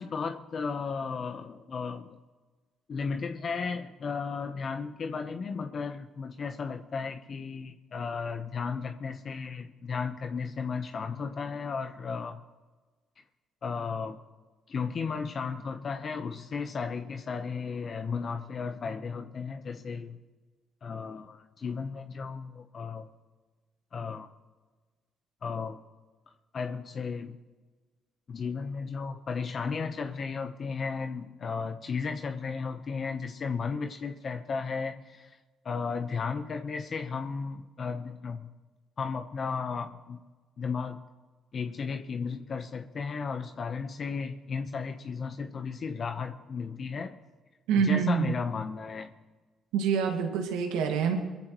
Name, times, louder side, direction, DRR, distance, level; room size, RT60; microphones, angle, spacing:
voice 1, 0.0-2.2 2.9-12.4 13.6-14.2 14.7-20.2 20.8-23.1 23.9-24.3 25.4-25.8 26.3-27.4 28.3-35.4 35.6-38.5 39.0-40.2 40.6-41.0 41.5-47.2 47.8-49.1, left 5 dB, 50° left, 7 dB, 1.0 m, -34 dB
voice 2, 47.7-48.3 49.7-51.2, right 6 dB, 85° right, 3 dB, 2.1 m, -26 dB
22.5 x 14.5 x 3.1 m, 1.3 s
supercardioid pair, 60°, 0 cm